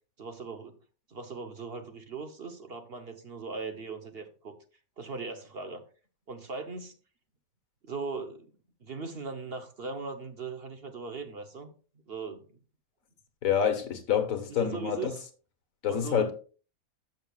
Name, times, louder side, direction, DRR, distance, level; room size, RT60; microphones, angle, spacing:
voice 1, 0.2-0.8 1.1-4.5 5.0-5.8 6.3-7.0 7.8-8.5 8.8-11.7 12.1-12.6 14.5-15.3 15.9-16.3, right 4 dB, 45° right, 1.1 m, -39 dB
voice 2, 13.4-15.1 15.8-16.3, left 8 dB, 65° left, 1.6 m, -27 dB
13.5 x 6.6 x 2.4 m
omnidirectional pair, 1.5 m